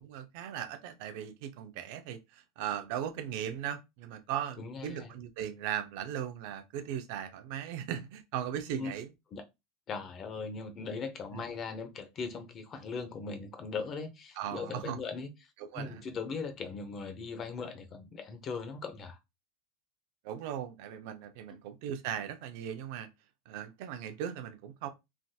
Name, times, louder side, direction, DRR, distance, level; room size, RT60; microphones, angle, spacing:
voice 1, 0.0-9.1 11.3-11.4 14.4-15.0 15.6-16.0 20.2-23.1 23.5-24.9, right 9 dB, 65° right, 0.5 m, -38 dB
voice 2, 4.6-5.1 8.7-8.9 9.3-9.4 9.9-15.3 15.7-19.2, left 5 dB, 35° left, 0.7 m, -39 dB
3.4 x 2.5 x 2.2 m
hypercardioid pair, 105°, 0 cm